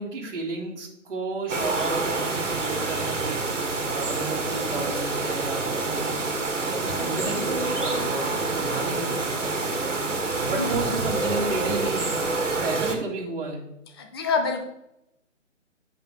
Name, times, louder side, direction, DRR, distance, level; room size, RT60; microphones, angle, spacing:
voice 1, 0.0-3.4 3.9-6.1 6.7-9.7 9.9-12.2 12.6-13.6, right 3 dB, 45° right, -3 dB, 2.0 m, -33 dB
sound 1, 1.5-13.0, right 3 dB, 70° right, 1.8 m, -27 dB
voice 2, 14.0-14.6, left 5 dB, 20° left, 4 dB, 0.8 m, -26 dB
10.5 x 5.2 x 3.2 m, 0.85 s
figure-of-eight pair, 145°, 38 cm